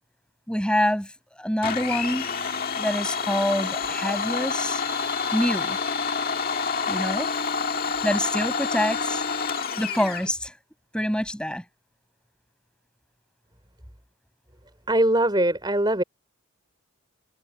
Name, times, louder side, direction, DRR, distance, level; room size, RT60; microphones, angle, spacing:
voice 1, 0.5-1.1 1.4-2.3 2.8-4.8 5.3-5.8 6.9-7.3 7.8-9.2 9.8-10.5 10.9-11.6, equal, 5° left, 6.2 m, -26 dB
Domestic sounds home sounds, 1.6-10.3, left 5 dB, 40° left, 1.9 m, -28 dB
voice 2, 14.9-16.0, right 1 dB, 20° right, 4.5 m, -21 dB
head